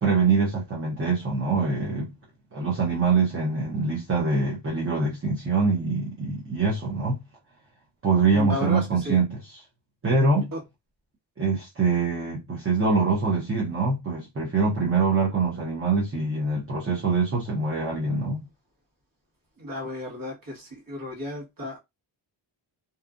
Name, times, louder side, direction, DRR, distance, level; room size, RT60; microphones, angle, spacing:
voice 1, 0.0-2.1 2.5-7.2 8.0-9.6 10.0-10.5 11.4-18.4, right 4 dB, 25° right, 0.8 m, -24 dB
voice 2, 8.3-9.2 10.5-10.6 19.6-21.8, left 1 dB, 45° right, 1.5 m, -33 dB
2.7 x 2.4 x 2.4 m
cardioid pair, 100°, 48 cm